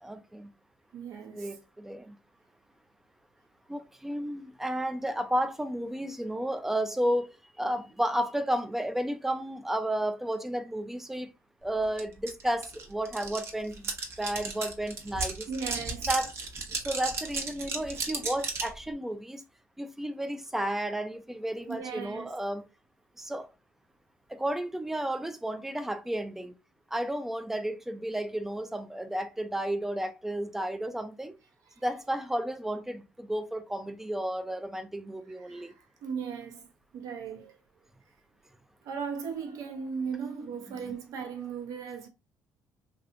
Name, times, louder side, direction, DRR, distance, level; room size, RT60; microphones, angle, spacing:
voice 1, 0.0-0.5 1.3-2.2 3.7-7.3 7.6-11.3 11.6-15.5 16.1-16.3 16.8-19.4 19.8-22.6 23.2-23.5 24.3-26.5 26.9-31.4 31.8-35.7 40.8-40.9, right 1 dB, 5° right, 0.5 m, -32 dB
voice 2, 0.9-1.6 15.5-16.1 21.7-22.3 31.6-31.8 35.4-37.6 38.8-42.1, right 6 dB, 70° right, 1.0 m, -37 dB
sound 1, 12.0-12.1 12.3-18.8, right 4 dB, 45° right, 1.0 m, -34 dB
3.2 x 2.9 x 2.5 m
cardioid pair, 95°, 6 cm